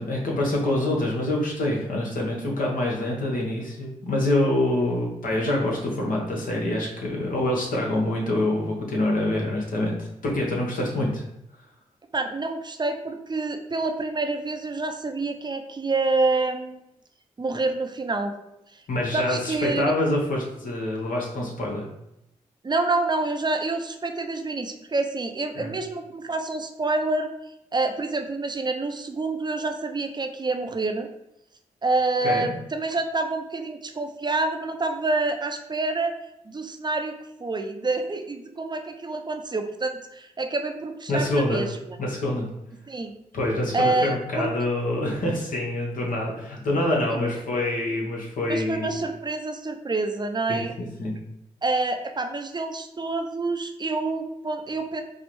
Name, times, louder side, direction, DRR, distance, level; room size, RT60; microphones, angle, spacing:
voice 1, 0.0-11.2 18.9-21.9 25.5-25.7 32.2-32.5 41.1-41.6 42.0-42.5 43.3-49.0 50.5-51.2, left 1 dB, 70° left, -2 dB, 1.0 m, -26 dB
voice 2, 12.1-16.8 17.4-18.3 18.7-18.8 19.1-19.9 22.6-27.3 27.7-31.1 31.8-36.1 36.5-42.0 42.9-43.1 43.7-44.5 48.5-50.7 51.6-55.0, right 3 dB, 30° right, 6 dB, 0.5 m, -27 dB
4.4 x 2.0 x 3.1 m, 0.83 s
supercardioid pair, 40°, 15 cm